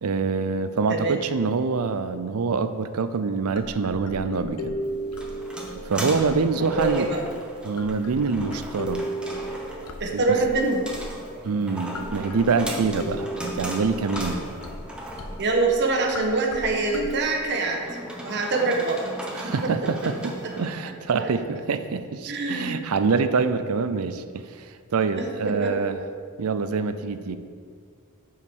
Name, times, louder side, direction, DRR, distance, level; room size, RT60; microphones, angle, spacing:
voice 1, 0.0-4.8 5.7-7.1 7.6-9.0 10.1-10.4 11.4-14.4 19.3-24.7 24.9-26.0 26.4-27.4, right 4 dB, 80° right, 11 dB, 0.5 m, -25 dB
sound 1, 3.3-7.3 7.8-11.5 11.9-17.2, equal, 90° left, 0.8 m, -36 dB
sound 2, 4.8-20.7, right 1 dB, 5° right, 1.0 m, -38 dB
voice 2, 6.6-7.2 10.0-10.8 11.9-12.1 15.4-17.8 18.2-19.0 19.4-19.7 21.2-21.3 22.3-22.8 25.1-25.7, right 3 dB, 50° right, 1 dB, 1.2 m, -25 dB
8.8 x 4.8 x 6.1 m, 2.2 s
head